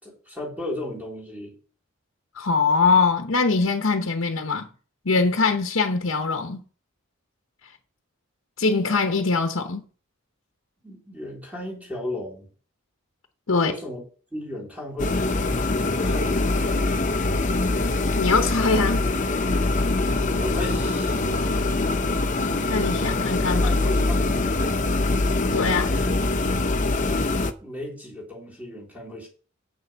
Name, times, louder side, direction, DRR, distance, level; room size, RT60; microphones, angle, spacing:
voice 1, 0.0-1.6 10.8-12.5 13.6-14.0 14.3-15.2 16.0-16.6 20.3-21.4 23.6-24.6 27.6-29.3, left 1 dB, 5° right, 3.7 m, -35 dB
voice 2, 2.4-4.7 5.0-6.6 8.6-9.8 13.5-13.7 18.2-19.1 22.7-23.7 25.5-25.9, left 4 dB, 85° left, 1.0 m, -22 dB
sound 1, 15.0-27.5, left 2 dB, 40° left, 0.7 m, -23 dB
7.8 x 6.8 x 5.6 m
head